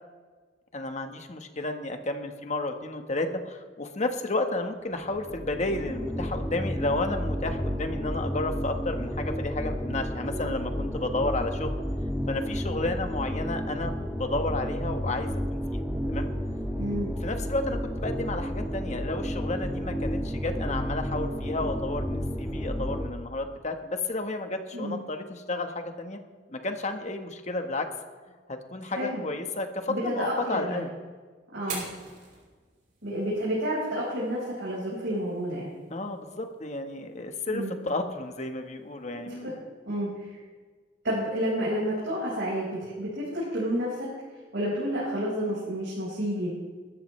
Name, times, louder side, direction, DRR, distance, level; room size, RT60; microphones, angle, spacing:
voice 1, 0.7-11.7 12.3-15.8 16.1-16.3 17.2-26.2 26.5-27.9 28.5-30.9 35.9-39.5, left 2 dB, 40° left, 6 dB, 1.3 m, -32 dB
sound 1, 5.0-23.0, equal, 20° right, 5.7 m, -31 dB
voice 2, 16.7-17.1 24.7-25.0 28.9-29.2 29.9-30.8 31.5-31.8 33.0-35.7 37.5-37.7 39.4-39.5 39.9-40.4 41.0-44.1 44.5-46.5, equal, 70° right, -8 dB, 5.1 m, -30 dB
Fire, 31.5-39.5, right 4 dB, 45° right, 5.2 m, -47 dB
21.0 x 13.0 x 3.3 m, 1.4 s
head